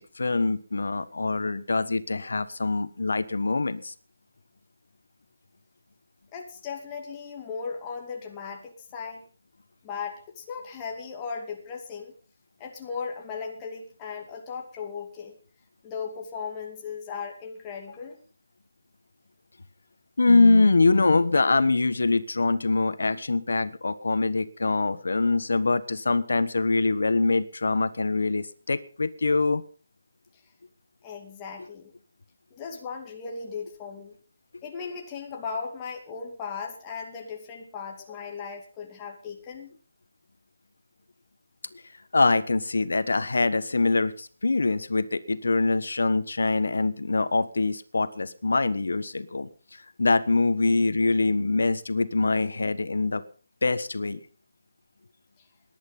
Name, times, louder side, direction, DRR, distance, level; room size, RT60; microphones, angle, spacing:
voice 1, 0.0-3.9 20.2-29.6 42.1-49.5 50.0-53.2 53.6-54.2, left 3 dB, 85° left, 13 dB, 1.3 m, -24 dB
voice 2, 6.3-9.2 9.8-12.1 12.6-15.3 15.8-18.2 31.0-31.9 32.5-34.1 34.6-39.7, left 5 dB, 15° left, 1 dB, 2.5 m, -37 dB
18.5 x 10.5 x 5.5 m, 0.39 s
hypercardioid pair, 175°, 0 cm